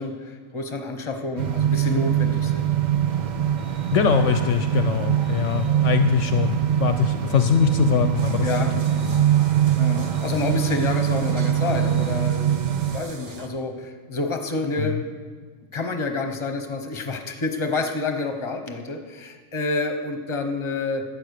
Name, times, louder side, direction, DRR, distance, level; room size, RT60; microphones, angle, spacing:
voice 1, 0.0-2.7 7.2-7.3 8.4-8.7 9.8-15.0 15.7-21.0, left 3 dB, 25° left, 5 dB, 1.0 m, -28 dB
sound 1, 1.4-13.0, right 10 dB, 75° right, 0.4 m, -23 dB
sound 2, 3.1-12.2, right 1 dB, 30° right, 0.9 m, -43 dB
voice 2, 3.9-9.2 14.8-15.0, left 8 dB, 70° left, 8 dB, 0.9 m, -23 dB
sound 3, 8.1-13.5, right 4 dB, 50° right, 1.1 m, -43 dB
12.0 x 8.3 x 6.5 m, 1.5 s
omnidirectional pair, 1.4 m